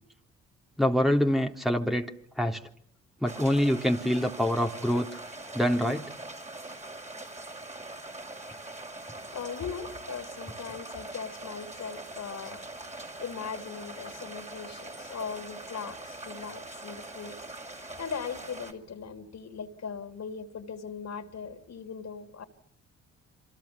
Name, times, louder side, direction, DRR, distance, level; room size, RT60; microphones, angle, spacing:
voice 1, 0.8-2.1 2.4-2.6 3.2-5.1 5.5-6.1, equal, ahead, 3.3 m, -25 dB
sound 1, 3.2-18.7, right 2 dB, 20° right, 5.9 m, -42 dB
voice 2, 9.1-22.4, left 6 dB, 50° left, 3.6 m, -39 dB
28.0 x 26.5 x 7.1 m
hypercardioid pair, 45°, 33 cm